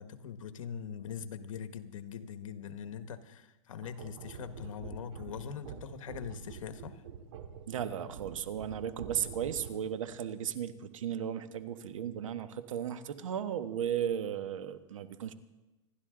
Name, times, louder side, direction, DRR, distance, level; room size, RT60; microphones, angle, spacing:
voice 1, 0.0-7.0, left 7 dB, 85° left, 10 dB, 1.4 m, -42 dB
sound 1, 3.8-10.0, right 7 dB, 60° right, 2.1 m, -47 dB
voice 2, 7.7-15.3, right 9 dB, 80° right, 10 dB, 1.3 m, -35 dB
26.5 x 12.0 x 3.8 m, 1.1 s
supercardioid pair, 150°, 16 cm